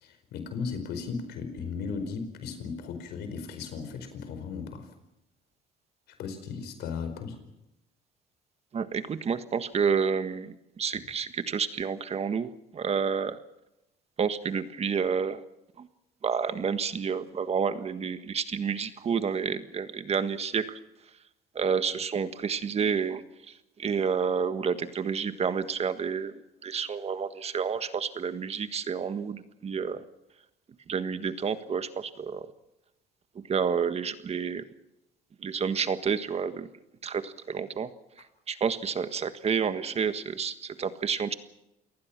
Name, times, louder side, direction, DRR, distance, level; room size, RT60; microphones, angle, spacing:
voice 1, 0.0-4.9 6.2-7.4, left 5 dB, 80° left, 8 dB, 4.8 m, -36 dB
voice 2, 8.7-13.4 14.2-15.4 15.8-15.9 16.2-20.8 21.5-23.5 23.8-26.3 26.6-30.0 30.9-32.5 33.5-34.6 35.4-36.7 37.0-37.9 38.5-41.3, right 6 dB, 40° right, 11 dB, 1.5 m, -29 dB
28.5 x 19.0 x 6.0 m, 0.88 s
cardioid pair, 110°, 17 cm